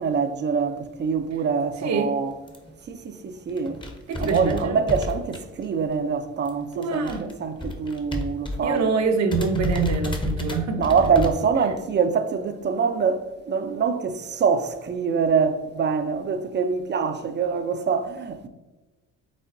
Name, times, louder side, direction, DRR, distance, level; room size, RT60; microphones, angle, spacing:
voice 1, 0.0-2.4 2.9-3.8 4.2-9.0 10.8-18.5, right 5 dB, 35° right, 0.5 m, -24 dB
sound 1, 2.5-2.7 3.2-3.3 3.5-5.9 6.1-8.8 9.0-9.1 9.3-11.3, left 1 dB, 15° left, 0.8 m, -31 dB
voice 2, 4.1-4.8 6.7-7.2 8.6-10.8, right 4 dB, 65° right, 0.8 m, -25 dB
5.3 x 3.5 x 2.6 m
cardioid pair, 90°, 30 cm